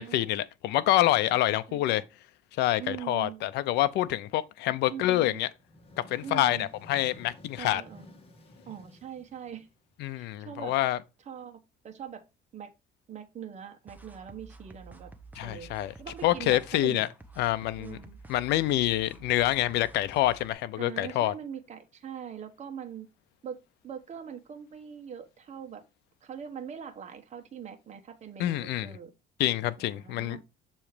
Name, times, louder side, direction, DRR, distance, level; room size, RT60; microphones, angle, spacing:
voice 1, 0.0-2.0 2.6-5.5 6.1-7.8 10.0-11.0 15.4-15.9 16.2-17.1 17.4-18.0 18.3-21.3 28.4-28.9 29.4-30.4, left 14 dB, 80° left, 0.6 m, -27 dB
voice 2, 1.1-2.0 2.8-3.5 4.9-5.4 6.2-6.7 7.6-8.0 8.7-9.7 10.2-10.7 11.3-11.6 11.8-12.2 12.5-12.7 13.1-15.1 15.4-15.7 16.0-17.0 17.8-18.2 20.8-23.1 23.4-23.6 23.8-25.8 26.2-29.1 29.8-30.4, right 8 dB, 40° right, 1.2 m, -42 dB
sound 1, 5.5-10.1, left 1 dB, 35° left, 1.9 m, -53 dB
sound 2, 13.9-20.5, right 3 dB, 10° right, 0.8 m, -50 dB
7.0 x 3.1 x 4.9 m
cardioid pair, 110°, 17 cm